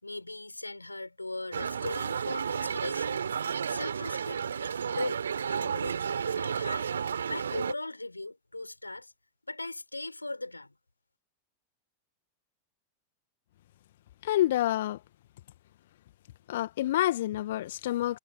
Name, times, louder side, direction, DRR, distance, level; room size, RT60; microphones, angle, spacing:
voice 1, 0.0-3.3 3.7-4.4 4.9-6.1 6.3-6.9 7.3-9.1 9.5-10.7, left 2 dB, 85° left, 4.9 m, -38 dB
sound 1, 1.5-7.7, right 7 dB, 70° right, 3.8 m, -32 dB
voice 2, 14.2-15.0 16.5-18.2, left 14 dB, 55° left, 1.9 m, -28 dB
figure-of-eight pair, 90°, 0 cm